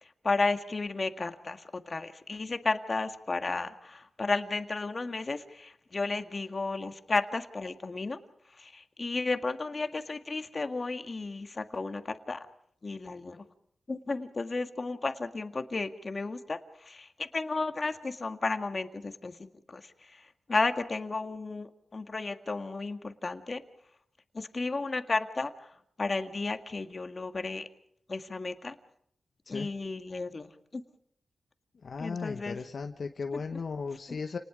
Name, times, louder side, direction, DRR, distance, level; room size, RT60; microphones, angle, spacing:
voice 1, 0.0-8.2 8.5-12.5 12.8-13.4 13.9-23.6 24.3-25.7 26.0-27.7 28.1-28.7 29.5-30.8 32.0-32.6 33.3-33.6 34.1-34.2, left 3 dB, 40° left, 7 dB, 1.8 m, -33 dB
voice 2, 31.8-34.4, left 5 dB, 65° left, 5 dB, 1.1 m, -36 dB
29.5 x 19.5 x 5.0 m, 0.69 s
cardioid pair, 65°, 0 cm